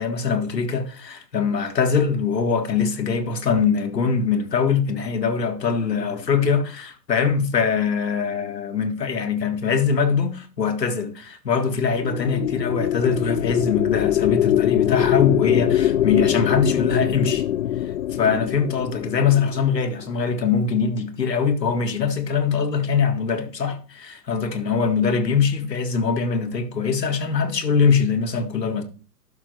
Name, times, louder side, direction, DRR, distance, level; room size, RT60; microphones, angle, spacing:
voice 1, 0.0-17.4 18.1-28.8, left 5 dB, 80° left, 1.8 m, -22 dB
sound 1, 11.9-20.3, left 11 dB, 55° left, 0.5 m, -23 dB
11.5 x 6.3 x 3.0 m
hypercardioid pair, 130°, 49 cm